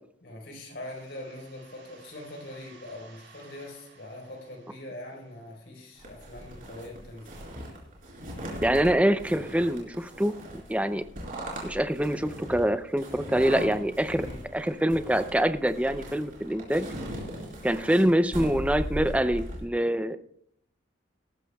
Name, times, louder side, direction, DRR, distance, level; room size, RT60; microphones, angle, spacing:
voice 1, 0.2-7.3 14.1-14.4, left 1 dB, 65° left, 1 dB, 4.3 m, -42 dB
sound 1, 0.8-6.3, right 4 dB, 65° right, 4.6 m, -57 dB
sound 2, 6.0-19.6, equal, 45° right, 4.6 m, -39 dB
voice 2, 8.6-10.3 10.7-11.0 11.6-14.3 14.5-16.9 17.6-20.2, right 1 dB, 5° right, 11 dB, 0.5 m, -25 dB
18.5 x 14.5 x 2.3 m, 0.69 s
head